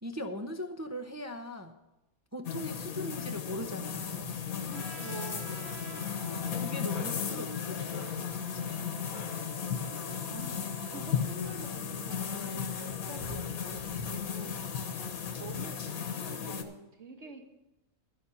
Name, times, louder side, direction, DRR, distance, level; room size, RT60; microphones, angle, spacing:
voice 1, 0.0-1.8 2.3-4.4 5.7-5.8 6.6-8.8, equal, 25° right, 5 dB, 0.4 m, -40 dB
sound 1, 2.4-16.6, left 7 dB, 85° left, 1.5 m, -35 dB
voice 2, 4.7-6.4 10.3-14.7 15.4-17.5, right 4 dB, 55° right, 3 dB, 1.7 m, -47 dB
Trumpet, 4.7-11.3, right 5 dB, 90° right, 1.6 m, -50 dB
12.0 x 7.1 x 7.0 m, 0.97 s
omnidirectional pair, 1.5 m